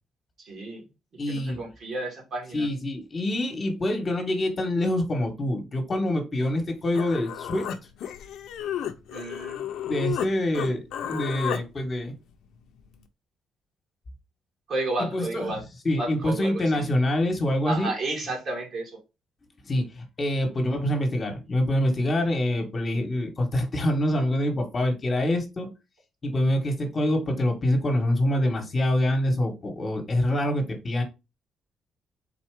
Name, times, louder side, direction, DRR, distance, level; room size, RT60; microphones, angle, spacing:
voice 1, 0.4-0.8 1.3-2.7 9.1-9.6 14.7-15.6 16.0-16.9 17.7-19.0, right 2 dB, 60° right, 2.3 m, -32 dB
voice 2, 1.2-1.6 2.5-7.7 9.8-12.1 15.0-15.5 15.8-17.9 19.6-25.7 26.2-31.0, left 1 dB, 35° left, 1.3 m, -25 dB
Human voice, 6.6-6.7 6.9-10.3 10.5-11.6, left 9 dB, 80° left, 0.6 m, -32 dB
4.0 x 2.8 x 4.7 m
cardioid pair, 90°, 0 cm